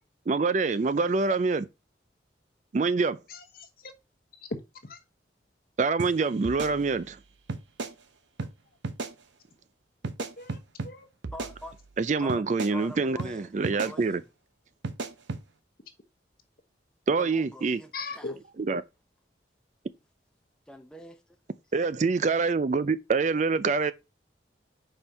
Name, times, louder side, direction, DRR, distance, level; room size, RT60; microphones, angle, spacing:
voice 1, 0.3-1.7 2.7-3.2 5.8-7.2 12.0-14.2 17.1-17.8 18.7-18.8 21.7-23.9, right 4 dB, 40° right, 0.4 m, -25 dB
voice 2, 3.3-3.9 4.8-5.0 10.4-11.1 17.9-18.3, left 3 dB, 50° left, 1.1 m, -40 dB
sound 1, 6.0-6.1 6.4-7.2 7.5-7.9 8.4-8.5 8.8-9.1 10.0-10.9 11.2-12.0 12.3-12.7 13.2-13.3 13.6-13.9 14.8-15.4, right 3 dB, 80° right, 0.7 m, -35 dB
voice 3, 11.3-11.8 12.2-12.4 12.7-14.3 17.1-18.4 20.7-21.2, left 1 dB, 5° left, 0.6 m, -44 dB
5.4 x 4.5 x 5.3 m
head